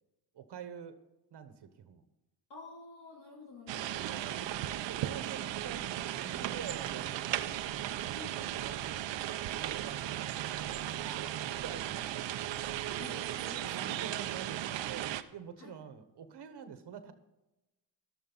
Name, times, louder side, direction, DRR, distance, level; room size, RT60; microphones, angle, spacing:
voice 1, 0.3-1.0 1.3-2.0 4.1-7.6 8.1-12.2 13.6-17.1, right 7 dB, 65° right, 9 dB, 1.2 m, -47 dB
voice 2, 2.5-4.0 8.1-8.8 12.9-14.1 15.6-15.8, left 3 dB, 80° left, -3 dB, 3.2 m, -50 dB
sound 1, 3.7-15.2, right 13 dB, 85° right, 0.7 m, -36 dB
sound 2, 3.9-13.1, left 2 dB, 15° left, 1.0 m, -58 dB
12.5 x 12.0 x 4.0 m, 0.99 s
cardioid pair, 70°, 43 cm